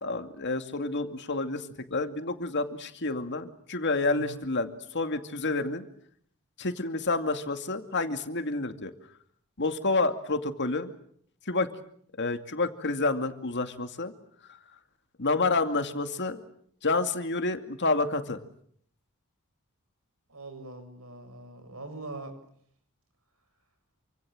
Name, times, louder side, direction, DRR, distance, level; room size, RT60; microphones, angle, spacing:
voice 1, 0.0-5.8 6.6-8.9 9.6-10.9 11.5-11.7 12.2-14.1 14.5-14.6 15.2-16.4 16.8-18.4, left 3 dB, 55° left, 8 dB, 2.4 m, -29 dB
voice 2, 4.1-4.4 20.3-22.4, right 2 dB, 75° right, 8 dB, 7.2 m, -42 dB
28.5 x 25.5 x 7.7 m, 0.66 s
head